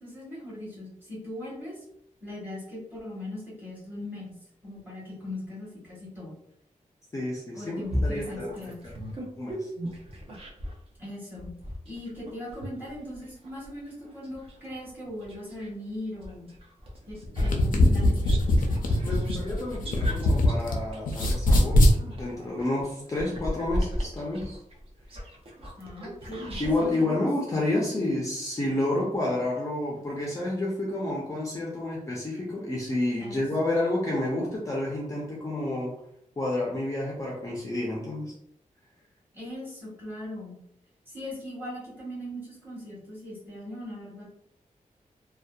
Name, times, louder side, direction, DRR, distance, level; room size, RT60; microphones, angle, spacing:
voice 1, 0.0-1.8 2.2-4.4 4.6-6.3 7.5-8.8 11.0-11.5 11.8-16.5 17.1-18.6 25.8-27.3 33.2-33.4 39.3-40.6 41.1-44.3, left 1 dB, 15° right, -7 dB, 1.2 m, -39 dB
voice 2, 7.1-7.8 8.0-8.5 8.8-8.9 9.4-9.7 17.4-17.5 19.0-24.6 25.1-25.3 26.6-36.0 36.4-38.3, left 1 dB, 25° left, -4 dB, 0.4 m, -30 dB
sound 1, 7.8-10.8 11.4-15.7 16.2-26.9, equal, 45° right, 0.6 m, -36 dB
sound 2, 17.2-20.8 21.1-22.0, left 1 dB, 85° left, 0.4 m, -21 dB
2.6 x 2.1 x 2.2 m, 0.74 s
wide cardioid pair, 160°, 14 cm